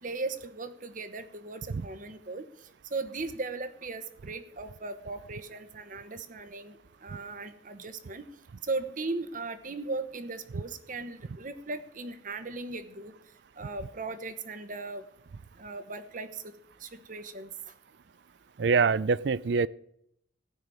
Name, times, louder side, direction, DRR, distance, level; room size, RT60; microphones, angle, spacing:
voice 1, 0.0-2.5 2.9-6.8 7.0-8.3 8.6-13.1 13.6-15.0 15.6-16.5 16.8-17.5, right 3 dB, 45° right, 11 dB, 1.0 m, -37 dB
voice 2, 18.6-19.7, right 5 dB, 60° right, 20 dB, 0.4 m, -24 dB
15.5 x 5.8 x 9.1 m, 0.75 s
head